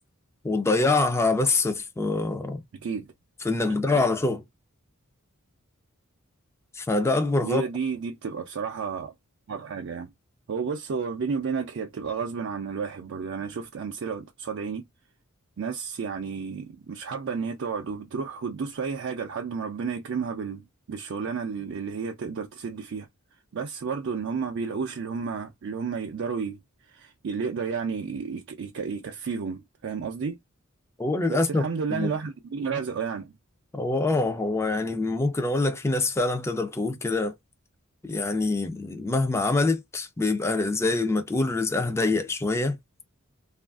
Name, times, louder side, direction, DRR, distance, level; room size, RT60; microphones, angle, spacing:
voice 1, 0.4-2.6 3.4-4.4 6.7-7.6 31.0-31.6 31.9-32.1 33.7-37.3 38.1-42.8, left 3 dB, 10° left, 0.4 m, -25 dB
voice 2, 2.8-3.1 3.6-4.0 7.4-9.1 9.5-10.1 10.5-14.8 15.6-23.1 23.5-26.6 26.9-30.4 31.3-33.3, right 5 dB, 60° right, 0.4 m, -32 dB
2.9 x 2.4 x 2.3 m
head